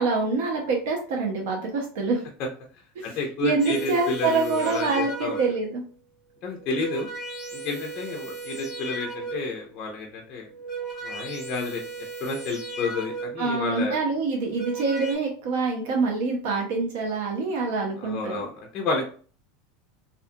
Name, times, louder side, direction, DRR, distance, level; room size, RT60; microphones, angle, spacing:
voice 1, 0.0-2.2 3.0-3.1 3.4-5.8 13.4-18.5, right 4 dB, 70° right, 0 dB, 0.7 m, -26 dB
voice 2, 3.0-5.4 6.4-7.1 7.5-10.5 11.0-11.8 12.2-14.0 18.0-19.1, left 3 dB, 35° left, 1 dB, 0.4 m, -30 dB
sound 1, 3.6-5.7 6.5-9.6 10.4-13.6 14.3-15.2, right 4 dB, 5° right, 0.9 m, -36 dB
2.4 x 2.3 x 2.6 m, 0.41 s
supercardioid pair, 170°, 0 cm